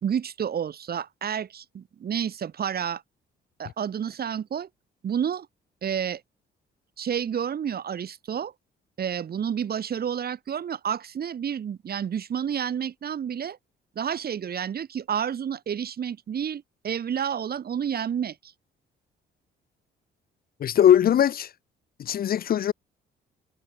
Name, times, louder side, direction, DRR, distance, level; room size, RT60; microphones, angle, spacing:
voice 1, 0.0-3.0 3.6-4.7 5.0-5.5 5.8-6.2 7.0-8.5 9.0-13.6 14.0-18.5, right 8 dB, 50° right, 1.8 m, -30 dB
voice 2, 20.6-21.5 22.0-22.7, left 10 dB, 50° left, 0.5 m, -20 dB
cardioid pair, 90°, 20 cm